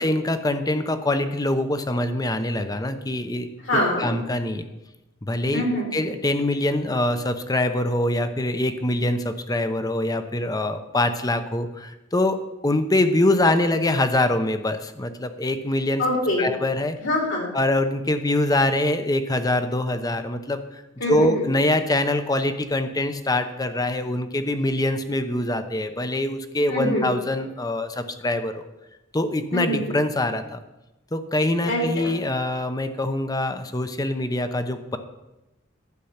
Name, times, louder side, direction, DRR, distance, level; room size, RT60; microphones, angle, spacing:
voice 1, 0.0-3.5 4.0-4.6 5.2-5.7 5.9-12.4 12.6-16.0 16.4-17.0 17.5-28.7 29.1-30.6 31.1-35.0, left 1 dB, 20° left, 9 dB, 0.8 m, -24 dB
voice 2, 3.6-4.1 5.5-5.9 16.0-16.5 17.0-17.5 21.0-21.5 26.7-27.1 29.5-30.0 31.6-32.1, equal, 65° left, -1 dB, 3.8 m, -24 dB
12.0 x 8.3 x 5.8 m, 0.97 s
head